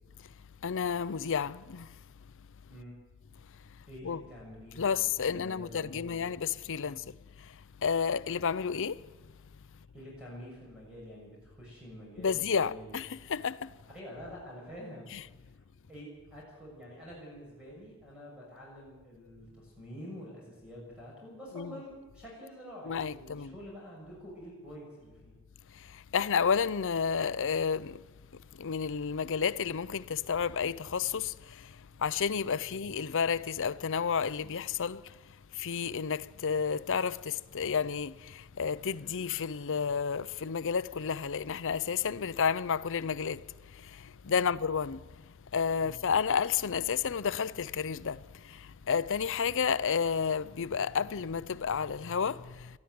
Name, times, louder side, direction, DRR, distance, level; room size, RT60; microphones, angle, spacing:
voice 1, 0.6-1.9 4.0-4.2 4.8-7.0 7.8-9.0 12.2-13.7 21.6-21.7 22.9-23.5 26.1-28.0 28.6-31.3 32.0-35.0 35.6-43.4 44.3-45.0 45.5-48.2 48.5-48.6 48.9-52.7, left 6 dB, 60° left, 0.6 m, -31 dB
voice 2, 3.9-6.3 6.8-7.0 9.9-12.9 13.9-15.1 15.4-15.6 15.9-25.3 32.7-32.8 45.8-45.9, equal, 5° right, 6.7 m, -47 dB
20.5 x 14.0 x 9.5 m
head